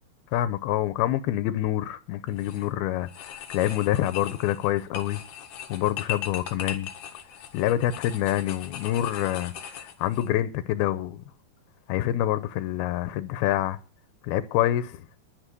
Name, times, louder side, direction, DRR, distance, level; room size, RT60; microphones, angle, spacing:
voice 1, 0.3-5.2 5.7-6.9 7.5-11.2 11.9-13.8 14.2-15.1, left 13 dB, 90° left, 2.7 m, -26 dB
sound 1, 2.3-2.7 3.1-10.3, left 9 dB, 60° left, 3.0 m, -39 dB
11.0 x 9.9 x 8.2 m
omnidirectional pair, 4.3 m